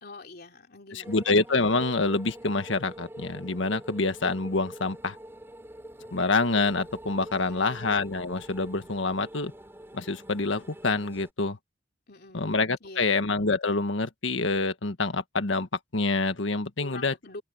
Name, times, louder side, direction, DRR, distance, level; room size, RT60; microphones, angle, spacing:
voice 1, 0.0-1.2 7.3-7.9 12.1-12.5 12.8-13.1 16.8-17.4, left 2 dB, 55° left, 3.1 m, -45 dB
voice 2, 0.9-5.2 6.1-9.5 9.9-11.6 12.3-15.7 15.9-17.1, left 3 dB, 85° left, 1.6 m, -26 dB
sound 1, 1.0-11.3, right 1 dB, 15° right, 3.6 m, -45 dB
open air
head